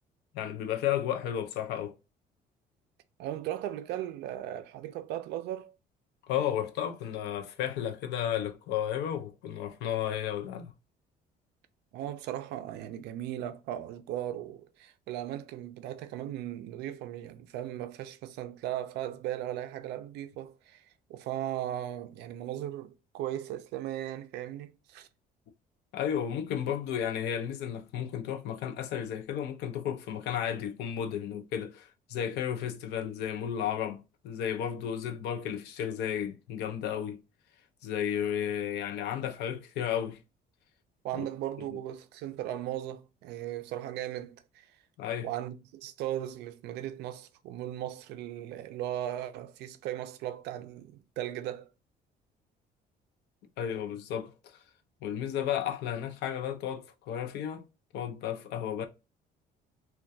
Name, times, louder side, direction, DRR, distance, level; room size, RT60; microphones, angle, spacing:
voice 1, 0.3-1.9 6.3-10.7 25.9-37.2 37.8-40.2 41.1-41.3 45.0-45.3 53.6-54.6 55.0-57.6 57.9-58.9, left 9 dB, 80° left, 0.5 m, -33 dB
voice 2, 3.2-5.7 11.9-25.1 41.0-44.7 45.2-51.7, right 12 dB, 80° right, 0.4 m, -37 dB
2.3 x 2.2 x 2.6 m
cardioid pair, 110°, 17 cm